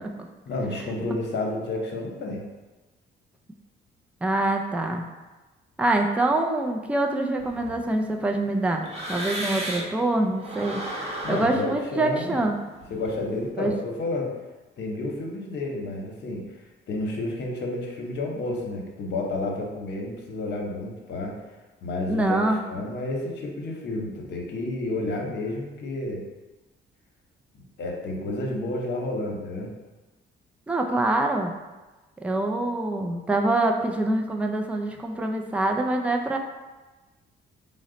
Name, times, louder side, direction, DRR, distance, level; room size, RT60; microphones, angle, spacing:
voice 1, 0.5-2.5 11.2-12.4 12.9-14.3 14.8-16.4 16.9-21.4 21.8-26.2 27.8-29.7, left 2 dB, 60° left, 0 dB, 0.9 m, -30 dB
voice 2, 4.2-5.1 5.8-10.8 11.3-12.6 13.6-13.7 22.1-22.6 30.7-31.5 32.2-36.4, right 2 dB, 5° right, 3 dB, 0.3 m, -25 dB
sound 1, 7.4-10.0 10.4-13.4, right 1 dB, 30° right, 0.8 m, -35 dB
3.9 x 2.1 x 3.8 m, 1.2 s
cardioid pair, 90°, 20 cm